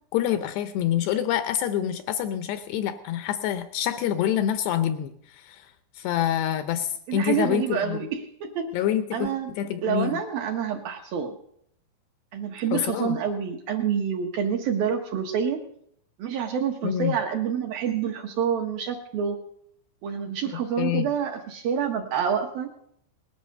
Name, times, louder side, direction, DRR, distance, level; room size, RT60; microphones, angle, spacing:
voice 1, 0.1-5.7 6.0-8.1 8.7-10.2 12.7-13.2 16.8-17.2 20.5-21.1, left 10 dB, 75° left, 10 dB, 2.6 m, -27 dB
voice 2, 7.1-8.7 9.1-9.5 9.8-11.3 12.3-15.6 16.2-19.4 20.0-22.7, right 7 dB, 65° right, 3 dB, 2.6 m, -27 dB
19.5 x 11.5 x 6.6 m, 0.69 s
omnidirectional pair, 5.3 m